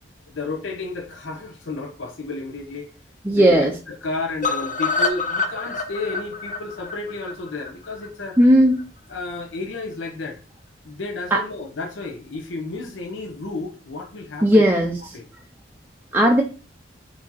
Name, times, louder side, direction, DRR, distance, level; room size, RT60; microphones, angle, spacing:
voice 1, 0.3-2.9 3.3-8.4 9.1-10.4 10.8-14.6 15.1-15.2, left 3 dB, 80° left, 0.7 m, -32 dB
voice 2, 3.2-3.7 8.4-8.8 11.3-11.4 14.4-15.2 16.1-16.4, equal, 10° right, 0.4 m, -16 dB
sound 1, 4.4-8.4 8.8-8.9 9.2-9.3 9.5-9.6, left 4 dB, 40° left, 0.9 m, -27 dB
4.8 x 2.7 x 4.0 m
head